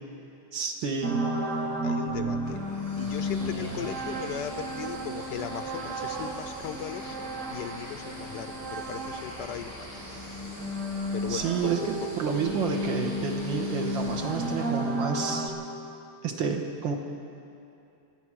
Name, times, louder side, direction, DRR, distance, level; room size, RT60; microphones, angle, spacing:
voice 1, 0.5-1.3 11.3-15.5 16.2-16.9, right 5 dB, 70° right, 3 dB, 1.9 m, -30 dB
sound 1, 1.0-9.6 9.9-15.5, right 1 dB, 45° right, 1.3 m, -33 dB
voice 2, 1.8-2.6 3.0-9.7 11.1-11.4, left 10 dB, 75° left, 8 dB, 1.1 m, -38 dB
sound 2, 2.4-10.8, left 2 dB, 15° left, 0.6 m, -46 dB
sound 3, 2.7-15.3, right 1 dB, 90° right, 4.8 m, -45 dB
26.0 x 8.8 x 6.2 m, 2.7 s
omnidirectional pair, 2.2 m